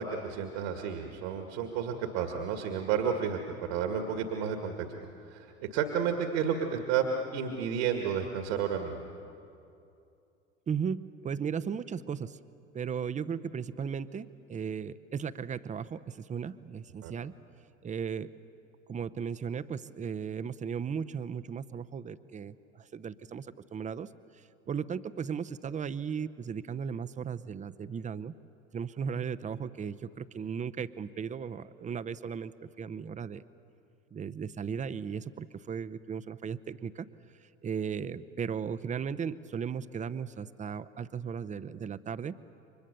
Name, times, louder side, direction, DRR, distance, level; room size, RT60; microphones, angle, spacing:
voice 1, 0.0-3.4 3.7-4.9 5.3-7.0 7.3-9.1 17.0-17.1, right 7 dB, 60° right, 5 dB, 2.0 m, -31 dB
voice 2, 10.7-12.4 12.7-17.3 17.8-18.3 18.9-28.3 28.7-33.4 34.1-37.1 37.4-42.4, right 7 dB, 20° right, 13 dB, 0.8 m, -36 dB
29.5 x 24.5 x 6.8 m, 2.6 s
figure-of-eight pair, 75°, 37 cm